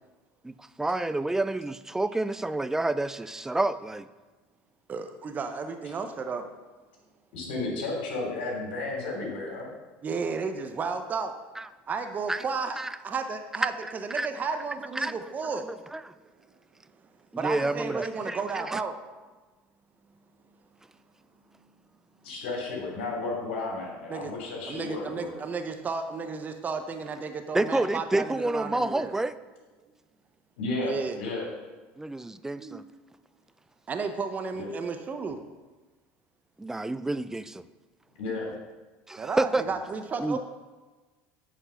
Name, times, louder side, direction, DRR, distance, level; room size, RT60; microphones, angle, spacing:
voice 1, 0.4-4.1 11.6-11.7 12.3-12.4 12.8-12.9 13.6-14.3 15.0-15.2 15.4-16.1 17.4-18.8 27.5-29.3 32.0-32.8 36.6-37.6 39.1-39.6 40.2-40.4, right 2 dB, 10° right, 14 dB, 0.4 m, -29 dB
voice 2, 4.9-6.5 10.0-11.3 11.9-12.8 13.0-15.7 17.4-19.0 24.1-24.3 24.7-29.1 30.8-31.2 32.6-32.8 33.9-35.4 39.2-40.4, right 5 dB, 30° right, 7 dB, 0.7 m, -33 dB
voice 3, 7.3-9.7 22.2-25.4 30.6-31.4 34.5-34.7 38.2-38.5, left 3 dB, 85° left, -1 dB, 3.0 m, -33 dB
8.8 x 4.6 x 5.8 m, 1.3 s
supercardioid pair, 100°, 6 cm